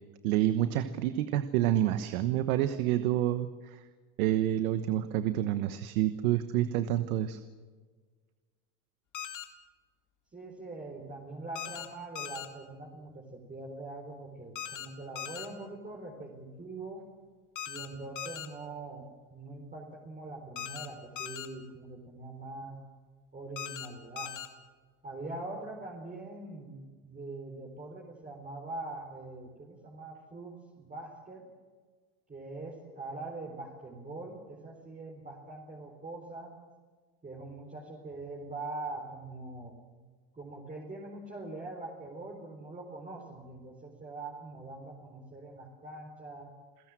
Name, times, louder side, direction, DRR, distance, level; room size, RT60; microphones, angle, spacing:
voice 1, 0.2-3.8 4.2-7.4, right 12 dB, 85° right, 10 dB, 1.3 m, -28 dB
sound 1, 9.1-9.4 11.5-11.9 12.1-12.5 14.6-14.9 15.2-15.5 17.6-17.9 18.2-18.5 20.6-20.9 21.2-21.5 23.6-23.9 24.2-24.5, left 10 dB, 45° left, 2.4 m, -39 dB
voice 2, 10.3-17.0 17.7-22.8 23.3-24.3 25.0-31.5 32.3-36.5 37.2-39.7 40.3-46.5, right 2 dB, 20° right, -1 dB, 4.4 m, -43 dB
28.0 x 16.0 x 7.6 m, 1.5 s
supercardioid pair, 120°, 43 cm